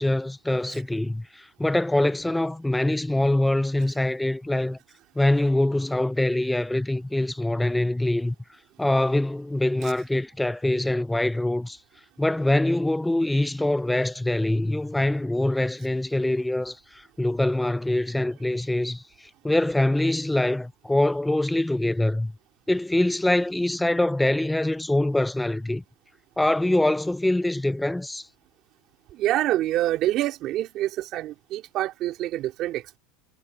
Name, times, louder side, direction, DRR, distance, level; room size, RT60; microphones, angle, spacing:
voice 1, 0.0-4.8 5.2-8.4 8.8-11.8 12.2-22.3 22.7-25.8 26.4-28.3, left 1 dB, 5° left, 0.4 m, -24 dB
voice 2, 29.1-33.0, right 14 dB, 45° right, 3.0 m, -26 dB
supercardioid pair, 120°, 0 cm